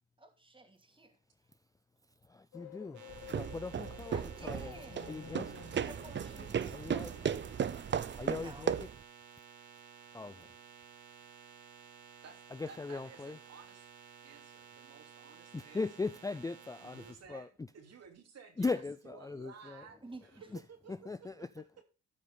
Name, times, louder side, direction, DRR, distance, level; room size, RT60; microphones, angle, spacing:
voice 1, 0.2-1.1 4.1-5.1 5.7-6.6 8.4-8.7 20.0-20.5, right 2 dB, 15° right, 2.6 m, -52 dB
voice 2, 2.2-3.0 3.3-4.8 5.1-5.5 6.6-7.3 8.1-8.7 10.1-10.5 12.5-13.4 15.5-17.0 17.3-17.5 18.6-19.9 20.5-20.6 20.9-21.6, left 3 dB, 10° left, 0.4 m, -39 dB
sound 1, 2.5-8.0, left 9 dB, 70° left, 3.1 m, -53 dB
sound 2, 2.9-17.1, right 7 dB, 75° right, 2.4 m, -55 dB
sound 3, 3.1-9.0, right 8 dB, 40° right, 0.7 m, -36 dB
voice 3, 12.7-13.9 14.2-15.9 16.8-21.1, right 6 dB, 55° right, 2.9 m, -55 dB
13.5 x 5.0 x 5.4 m
cardioid pair, 90°, 30 cm